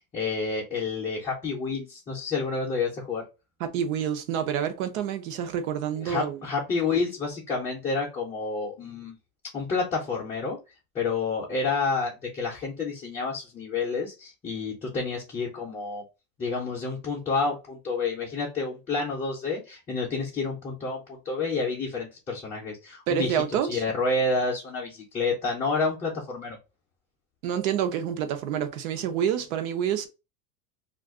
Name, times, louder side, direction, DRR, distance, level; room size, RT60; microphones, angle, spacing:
voice 1, 0.0-3.2 6.0-9.1 9.5-10.6 10.9-16.0 16.4-23.4 23.7-26.6, left 4 dB, 15° left, 0.5 m, -29 dB
voice 2, 3.6-6.4 23.1-23.8 27.4-30.1, right 9 dB, 65° right, 0.8 m, -28 dB
2.5 x 2.4 x 3.5 m
supercardioid pair, 155°, 43 cm